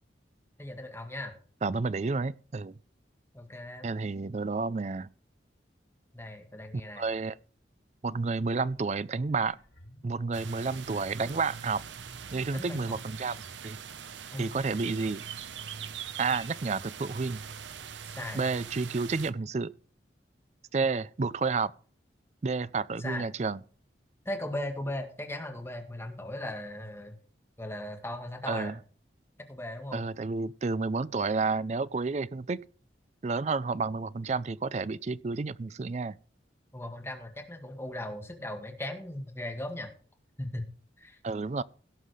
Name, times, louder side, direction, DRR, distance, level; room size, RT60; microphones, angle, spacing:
voice 1, 0.6-1.3 3.3-3.9 6.1-7.0 12.5-13.0 14.3-14.5 18.1-18.4 23.0-23.3 24.3-27.2 27.6-28.8 29.5-30.0 36.7-39.9 40.4-40.7 41.0-41.2, left 1 dB, 15° left, 1.9 m, -38 dB
voice 2, 1.6-2.8 3.8-5.1 6.7-7.3 8.0-9.6 10.0-11.8 12.3-13.4 13.6-13.8 14.4-15.2 16.2-17.4 18.3-19.7 20.7-21.7 22.4-23.6 28.5-28.8 29.9-32.6 33.2-36.2 41.2-41.6, right 4 dB, 40° right, 0.4 m, -30 dB
sound 1, 8.5-11.1 11.7-11.8, left 1 dB, 90° left, 3.6 m, -60 dB
sound 2, 10.3-19.3, right 7 dB, 85° right, 0.8 m, -42 dB
17.0 x 5.8 x 4.9 m
head